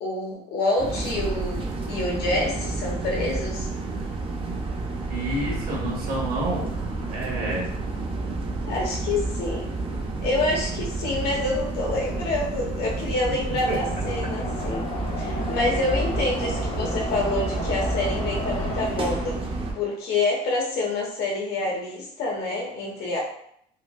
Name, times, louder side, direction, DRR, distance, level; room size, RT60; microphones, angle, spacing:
voice 1, 0.0-3.7 8.7-9.7 10.2-14.9 15.2-19.4 19.7-23.2, left 2 dB, 75° left, -2 dB, 1.1 m, -27 dB
sound 1, 0.8-19.7, right 3 dB, 30° right, 0.6 m, -30 dB
voice 2, 5.1-6.6 7.0-7.7 13.6-13.8, right 1 dB, 60° right, -4 dB, 1.5 m, -29 dB
sound 2, 13.8-18.9, left 2 dB, 35° left, 0.6 m, -32 dB
4.5 x 2.2 x 2.3 m, 0.68 s
cardioid pair, 110°, 17 cm